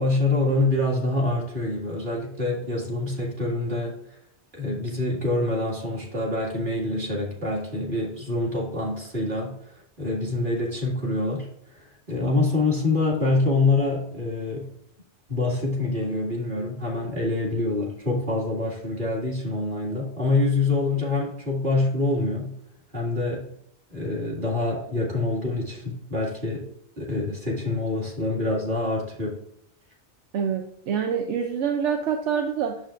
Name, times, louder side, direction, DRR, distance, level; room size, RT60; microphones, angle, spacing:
voice 1, 0.0-4.0 4.5-11.5 11.7-14.7 15.3-22.5 22.9-23.5 23.9-26.7 27.0-29.4, left 2 dB, 45° right, -4 dB, 2.3 m, -26 dB
voice 2, 30.3-32.8, right 7 dB, 90° right, 4 dB, 1.0 m, -26 dB
8.8 x 6.9 x 2.5 m, 0.72 s
omnidirectional pair, 1.2 m